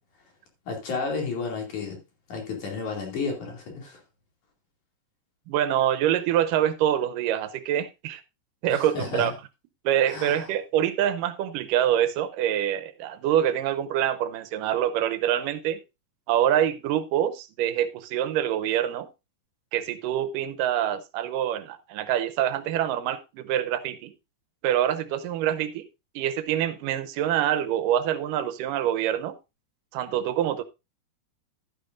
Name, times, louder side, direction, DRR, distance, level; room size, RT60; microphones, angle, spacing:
voice 1, 0.7-2.0 2.3-4.0 8.6-9.3 10.1-10.5, left 4 dB, 65° left, 4.0 m, -32 dB
voice 2, 5.5-8.2 8.6-9.3 9.8-15.8 16.3-19.1 19.7-24.1 24.6-25.9 26.2-29.4 29.9-30.6, right 11 dB, 85° right, 2.4 m, -25 dB
12.0 x 10.0 x 2.6 m
omnidirectional pair, 3.7 m